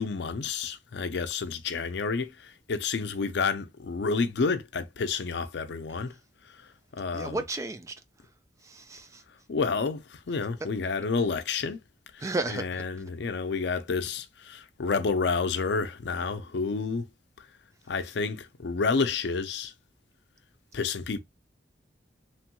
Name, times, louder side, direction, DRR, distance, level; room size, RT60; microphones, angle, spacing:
voice 1, 0.0-6.1 6.6-6.7 7.0-7.4 9.5-11.8 12.1-12.2 12.5-17.1 17.9-19.7 20.7-21.2, left 4 dB, 75° left, 0.5 m, -29 dB
voice 2, 7.1-8.0 8.6-9.2 12.2-12.9, right 2 dB, 15° right, 0.3 m, -33 dB
3.1 x 2.2 x 2.9 m
head